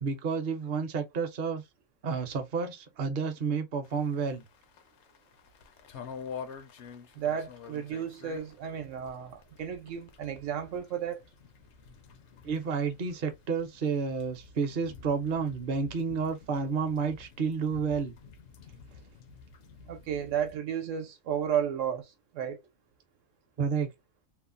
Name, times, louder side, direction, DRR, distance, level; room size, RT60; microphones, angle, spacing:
voice 1, 0.0-1.6 2.0-4.4 12.4-18.1 23.6-23.9, right 5 dB, 50° right, 0.7 m, -30 dB
sound 1, 3.8-20.6, left 6 dB, 70° left, 0.8 m, -49 dB
voice 2, 7.1-11.2 19.9-22.6, right 8 dB, 75° right, 1.0 m, -33 dB
3.0 x 2.0 x 2.4 m
omnidirectional pair, 1.3 m